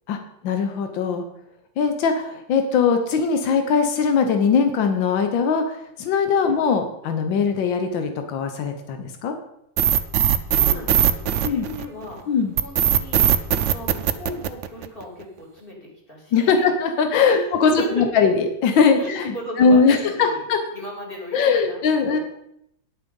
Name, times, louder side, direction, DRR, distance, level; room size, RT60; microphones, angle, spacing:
voice 1, 0.4-1.3 1.8-9.3 11.4-11.6 12.3-12.5 16.3-17.7 18.0-20.6 21.3-22.2, left 5 dB, 85° left, 6 dB, 1.7 m, -20 dB
sound 1, 9.8-12.0 12.6-15.0, right 9 dB, 90° right, 0.6 m, -19 dB
voice 2, 10.3-13.3 13.7-16.7 17.3-18.2 19.0-20.5 20.7-22.2, left 1 dB, 30° left, -2 dB, 2.9 m, -36 dB
9.7 x 8.5 x 5.3 m, 0.77 s
omnidirectional pair, 2.0 m